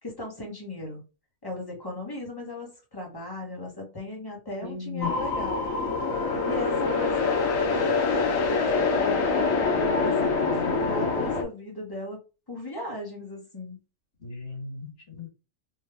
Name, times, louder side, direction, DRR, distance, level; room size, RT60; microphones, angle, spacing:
voice 1, 0.0-1.0 1.4-5.6 6.0-9.3 9.9-12.2 12.5-13.8, left 1 dB, 15° left, 1.3 m, -37 dB
voice 2, 4.6-5.1 14.2-15.3, left 6 dB, 55° left, 2.2 m, -36 dB
sound 1, 5.0-11.4, left 4 dB, 75° left, 1.2 m, -25 dB
3.7 x 2.5 x 3.3 m
omnidirectional pair, 1.4 m